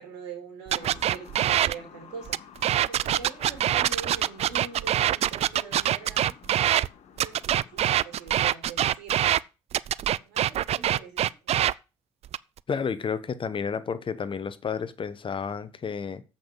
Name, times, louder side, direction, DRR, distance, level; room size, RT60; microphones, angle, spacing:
voice 1, 0.0-2.4 2.8-6.3 7.1-9.2 10.2-11.2, right 5 dB, 85° right, 3.2 m, -42 dB
sound 1, 0.7-8.4, left 7 dB, 60° left, 1.4 m, -51 dB
sound 2, 0.7-1.7 2.3-6.9 7.2-9.4 9.7-11.7 12.3-12.6, right 12 dB, 50° right, 0.4 m, -24 dB
voice 2, 12.7-16.2, left 6 dB, 40° left, 1.1 m, -31 dB
7.7 x 5.7 x 7.3 m
hypercardioid pair, 55°, 13 cm